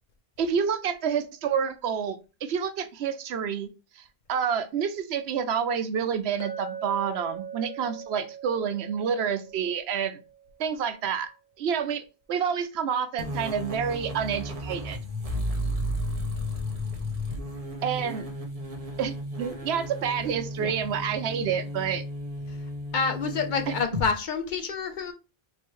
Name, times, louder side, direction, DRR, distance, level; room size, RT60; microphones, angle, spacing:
voice 1, 0.4-3.7 4.0-4.1 4.3-10.2 10.6-11.3 11.6-12.0 12.3-15.0 17.8-18.3 19.0-22.0 23.7-23.8, right 7 dB, 85° right, 0.9 m, -28 dB
Chink clink, 6.4-10.6, right 7 dB, 85° left, 1.1 m, -40 dB
sound 1, 13.2-24.1, left 1 dB, 35° right, 0.9 m, -33 dB
voice 2, 22.9-25.1, left 5 dB, 55° left, 0.7 m, -28 dB
3.2 x 3.0 x 4.5 m
omnidirectional pair, 1.1 m